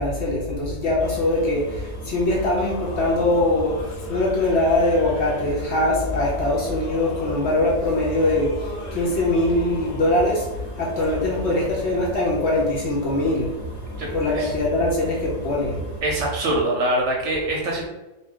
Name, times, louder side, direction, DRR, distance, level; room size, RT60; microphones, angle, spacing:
voice 1, 0.0-13.6 14.1-15.8, left 1 dB, 60° left, -3 dB, 0.8 m, -22 dB
sound 1, 1.0-16.0, equal, 25° left, 0.8 m, -42 dB
Singing / Musical instrument, 2.3-11.7, left 2 dB, 80° left, 1.1 m, -40 dB
voice 2, 14.0-14.5 16.0-17.9, right 1 dB, 65° right, -1 dB, 0.8 m, -24 dB
2.8 x 2.3 x 3.4 m, 1.0 s
omnidirectional pair, 1.5 m